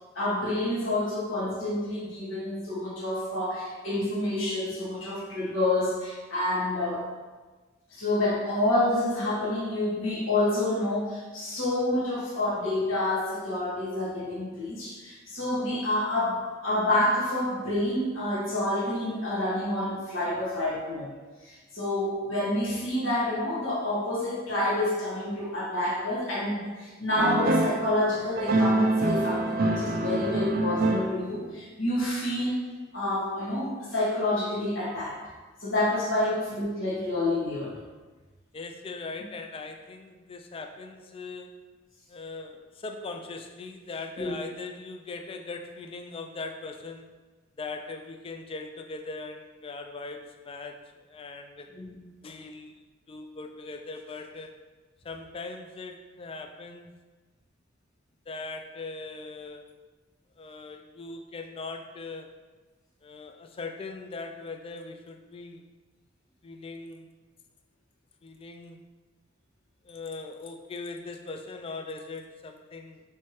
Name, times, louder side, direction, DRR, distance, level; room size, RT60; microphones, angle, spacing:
voice 1, 0.1-7.1 7.9-21.1 21.4-32.6 32.9-35.2 35.6-37.8 44.2-44.3 51.7-51.9, left 1 dB, 70° left, -6 dB, 1.4 m, -28 dB
sound 1, 27.2-27.9 28.4-31.4, right 2 dB, 45° right, 0.4 m, -25 dB
voice 2, 38.5-41.6 42.1-47.1 47.6-51.7 52.2-54.6 55.0-56.9 58.3-59.7 60.4-62.3 63.0-65.7 66.4-67.1 68.2-68.8 69.8-73.0, left 3 dB, 30° left, 4 dB, 0.3 m, -40 dB
4.5 x 3.3 x 3.0 m, 1.3 s
head